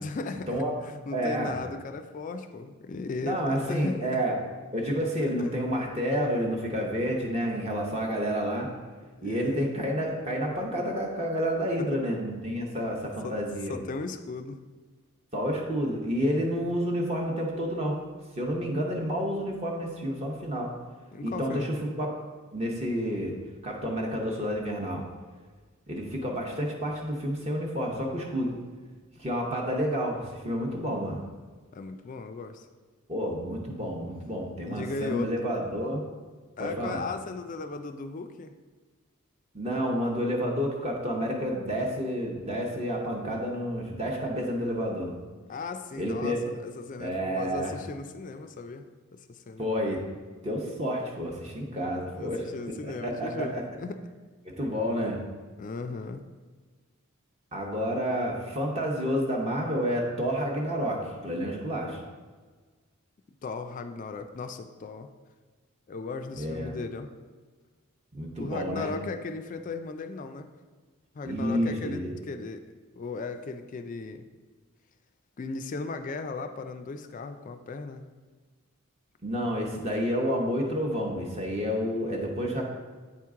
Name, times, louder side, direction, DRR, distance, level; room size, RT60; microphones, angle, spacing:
voice 1, 0.0-0.6 0.8-4.2 5.4-5.6 9.2-9.7 11.8-12.0 13.2-13.4 13.7-14.6 21.1-21.7 31.7-32.7 34.7-35.5 36.6-38.6 45.5-49.7 52.2-54.0 55.6-56.2 63.4-65.1 65.9-67.1 68.4-70.5 71.1-72.7 73.0-74.2 75.4-78.0, left 3 dB, 35° left, 8 dB, 0.3 m, -37 dB
voice 2, 1.1-1.6 3.2-4.4 4.7-8.7 9.2-13.8 15.3-18.0 18.4-20.7 21.2-22.1 22.5-23.4 23.6-25.0 25.9-28.6 29.2-31.2 33.1-36.0 36.6-37.0 39.5-45.1 46.0-46.4 47.0-47.7 49.6-50.0 50.4-52.4 52.8-53.6 54.4-55.2 57.5-62.0 66.3-66.8 68.1-68.9 71.2-72.1 79.2-82.6, equal, 30° right, 0 dB, 0.8 m, -29 dB
8.6 x 4.5 x 3.6 m, 1.4 s
head